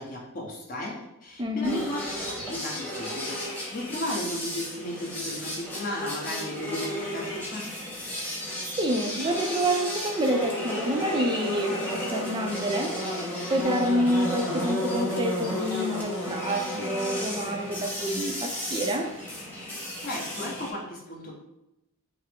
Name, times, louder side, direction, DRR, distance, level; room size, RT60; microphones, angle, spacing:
voice 1, 0.0-7.7 20.0-21.3, left 1 dB, 40° left, 1.0 m, -35 dB
voice 2, 1.4-1.9 8.6-13.2 13.5-19.2, equal, 20° right, 0.5 m, -28 dB
sound 1, 1.6-20.7, equal, 10° left, 1.1 m, -33 dB
5.5 x 2.0 x 3.6 m
head